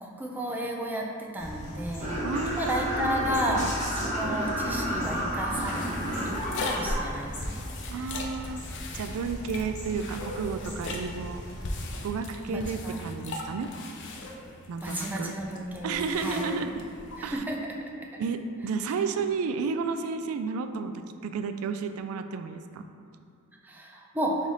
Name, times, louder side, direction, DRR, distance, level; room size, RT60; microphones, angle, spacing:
voice 1, 0.0-2.2 2.5-3.7 4.0-5.9 6.1-7.4 7.9-8.1 12.5-13.0 14.8-16.4 17.2-17.6 23.6-24.3, equal, 10° right, -1 dB, 0.4 m, -33 dB
sound 1, 1.4-12.0, equal, 35° left, 1.1 m, -39 dB
sound 2, 2.0-7.0, equal, 35° right, 1.0 m, -31 dB
voice 2, 2.2-3.7 7.9-8.7 8.9-11.4 12.0-13.7 14.7-15.4 15.8-16.9 17.2-17.4 18.2-22.9, right 5 dB, 90° right, 11 dB, 0.3 m, -32 dB
sound 3, 5.3-17.4, left 2 dB, 60° left, 0.5 m, -39 dB
3.9 x 3.2 x 4.0 m, 2.2 s
head